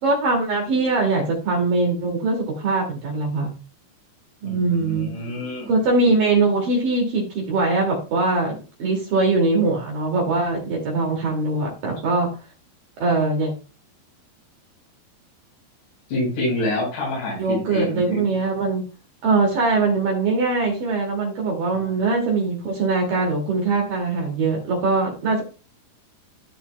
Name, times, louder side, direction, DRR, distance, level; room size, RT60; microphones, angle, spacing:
voice 1, 0.0-3.5 4.4-5.1 5.7-12.3 13.0-13.5 17.4-18.8 19.2-25.4, right 3 dB, 50° right, -1 dB, 3.6 m, -22 dB
voice 2, 4.4-5.7 16.1-18.3 21.7-22.1, left 1 dB, 70° left, -5 dB, 6.9 m, -27 dB
15.5 x 5.3 x 2.3 m, 0.33 s
omnidirectional pair, 5.6 m